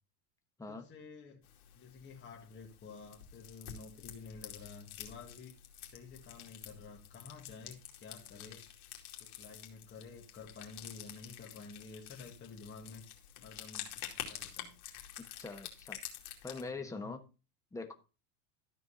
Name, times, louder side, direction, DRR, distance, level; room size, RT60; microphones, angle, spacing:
voice 1, 0.7-1.5 1.7-5.6 5.8-8.6 9.2-13.0 13.4-14.8 16.6-17.2, left 4 dB, 25° left, 2.1 m, -51 dB
sound 1, 1.4-16.6, left 11 dB, 85° left, 2.8 m, -49 dB
voice 2, 15.4-16.0 16.4-17.2 17.7-17.9, left 3 dB, 5° left, 1.3 m, -42 dB
13.0 x 4.6 x 5.5 m
supercardioid pair, 135°, 43 cm